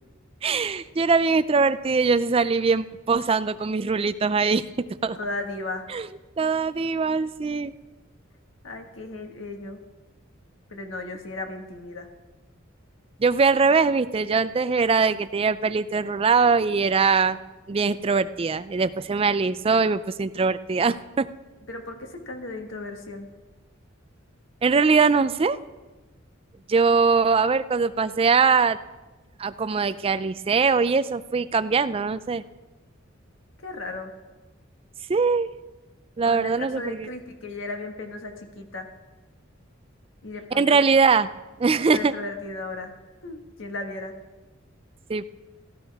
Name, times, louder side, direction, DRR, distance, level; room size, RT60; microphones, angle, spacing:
voice 1, 0.4-4.6 5.0-5.2 5.9-6.1 6.4-7.7 13.2-17.4 17.7-21.3 24.6-25.6 26.7-28.8 29.4-32.4 35.1-35.5 36.2-37.1 40.5-41.3 41.6-42.1 45.1-45.3, right 4 dB, 30° right, 14 dB, 0.4 m, -22 dB
voice 2, 5.1-5.8 8.6-9.8 10.7-12.1 21.7-23.3 33.6-34.1 36.2-38.9 40.2-40.8 41.9-42.9 43.2-44.1, left 2 dB, 70° left, 4 dB, 1.7 m, -35 dB
16.5 x 12.5 x 3.5 m, 1.1 s
head